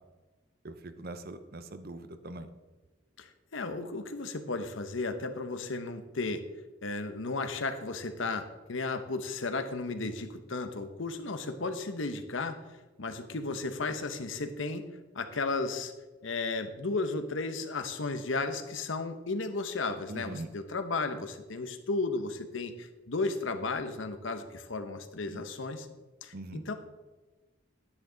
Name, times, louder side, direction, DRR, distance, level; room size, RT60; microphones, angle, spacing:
voice 1, 0.6-2.5 20.1-20.5 25.3-25.4 26.3-26.7, right 2 dB, 50° right, 10 dB, 0.8 m, -42 dB
voice 2, 3.2-6.4 6.8-12.6 13.0-14.9 15.1-15.9 16.2-25.9 26.2-26.7, left 3 dB, 70° left, 8 dB, 0.9 m, -34 dB
11.0 x 9.7 x 3.9 m, 1.2 s
head